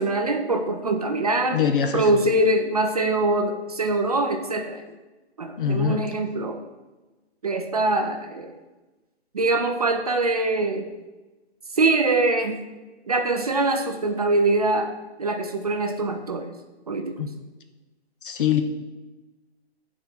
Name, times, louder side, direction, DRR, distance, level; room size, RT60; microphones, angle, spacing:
voice 1, 0.0-1.6 1.9-4.8 5.4-6.6 7.4-8.5 9.3-10.8 11.7-12.6 13.1-14.9 15.2-16.5 16.9-17.1, right 2 dB, 35° right, 5 dB, 0.4 m, -23 dB
voice 2, 1.5-2.2 5.6-6.1 17.2-17.3 18.2-18.6, left 7 dB, 50° left, 6 dB, 0.7 m, -23 dB
8.4 x 4.3 x 2.9 m, 1.1 s
hypercardioid pair, 145°, 34 cm